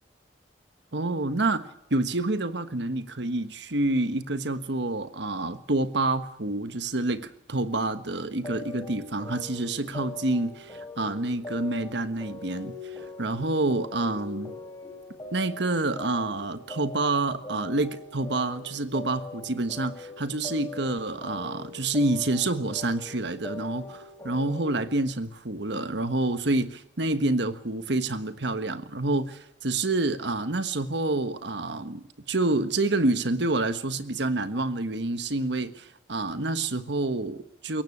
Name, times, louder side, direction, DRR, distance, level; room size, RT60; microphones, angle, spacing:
voice 1, 0.9-14.6 15.3-37.8, right 2 dB, 65° right, 1.4 m, -28 dB
sound 1, 8.3-24.8, left 3 dB, 20° left, 3.6 m, -42 dB
23.0 x 18.0 x 8.6 m
head